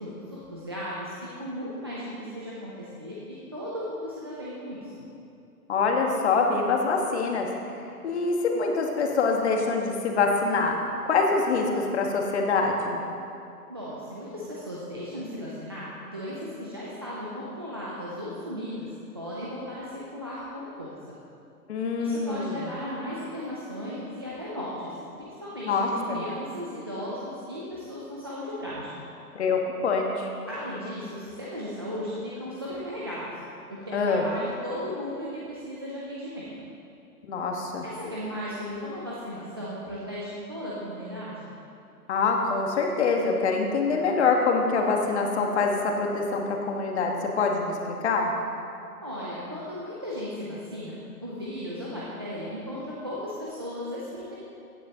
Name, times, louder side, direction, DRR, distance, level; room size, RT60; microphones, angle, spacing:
voice 1, 0.0-4.9 13.7-18.9 19.1-20.9 22.0-29.0 30.5-33.3 33.7-36.4 37.8-41.5 49.0-51.0 51.2-54.4, equal, 15° right, -8 dB, 0.5 m, -36 dB
voice 2, 5.7-7.5 8.0-10.8 11.0-13.0 21.7-22.7 25.6-26.2 29.3-30.3 33.9-34.3 37.2-37.8 42.1-48.3, left 4 dB, 45° left, 2 dB, 1.5 m, -25 dB
15.0 x 9.2 x 2.8 m, 2.6 s
hypercardioid pair, 150°, 47 cm